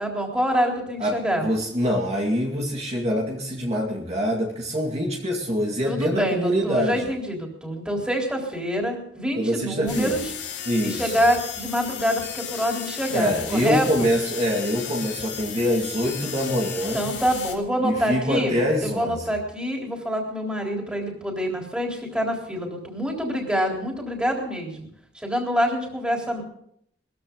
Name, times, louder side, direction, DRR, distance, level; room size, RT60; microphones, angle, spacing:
voice 1, 0.0-1.5 5.8-10.3 10.8-14.1 16.9-18.6 18.8-24.9 25.1-26.4, equal, 5° right, 0 dB, 3.8 m, -26 dB
voice 2, 1.0-7.1 9.4-10.2 10.7-11.2 13.1-17.0 17.8-19.2, equal, 40° right, -2 dB, 2.2 m, -25 dB
sound 1, 9.9-17.5, left 8 dB, 90° left, 2.8 m, -35 dB
20.5 x 14.5 x 3.9 m, 0.68 s
head